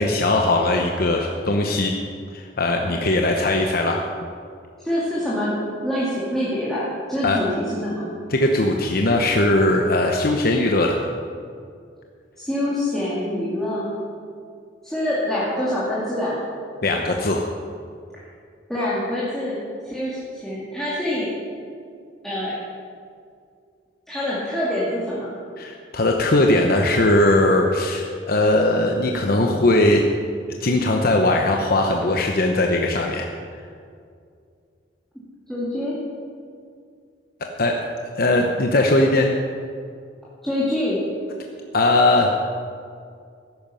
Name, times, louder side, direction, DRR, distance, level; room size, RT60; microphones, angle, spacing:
voice 1, 0.0-1.9 2.3-4.0 7.2-7.4 8.3-11.0 16.8-17.5 25.6-30.0 30.6-33.3 37.6-37.9 38.2-39.3 41.7-42.3, left 2 dB, 55° left, 2 dB, 0.9 m, -19 dB
voice 2, 4.8-5.5 5.8-8.1 12.4-14.0 14.8-16.4 18.7-19.6 19.8-21.4 22.2-22.6 24.1-25.4 35.5-35.9 40.4-41.0, left 1 dB, ahead, -9 dB, 2.4 m, -25 dB
14.0 x 11.0 x 5.6 m, 2.3 s
head